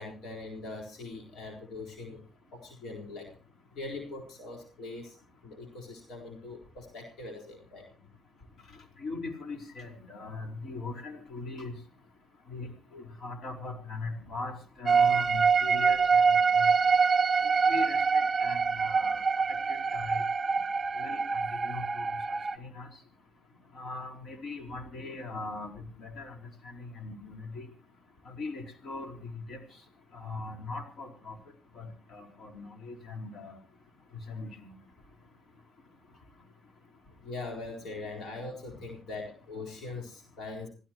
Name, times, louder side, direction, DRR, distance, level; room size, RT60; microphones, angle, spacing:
voice 1, 0.0-2.2 2.5-3.3 3.8-5.2 5.4-7.9 37.2-40.7, left 3 dB, 75° left, 2 dB, 4.2 m, -41 dB
voice 2, 9.0-11.7 12.5-16.0 16.3-16.4 17.7-19.2 19.7-20.2 21.0-21.2 21.6-22.0 22.6-22.9 23.7-25.7 26.0-26.3 26.6-27.6 28.4-29.1 29.5-29.6 30.1-31.4 31.8-33.6 34.3-34.7, left 3 dB, 60° left, 4 dB, 4.7 m, -40 dB
sound 1, 14.9-22.6, right 5 dB, 35° right, 0.7 m, -25 dB
26.5 x 16.5 x 3.1 m, 0.37 s
cardioid pair, 90°, 0 cm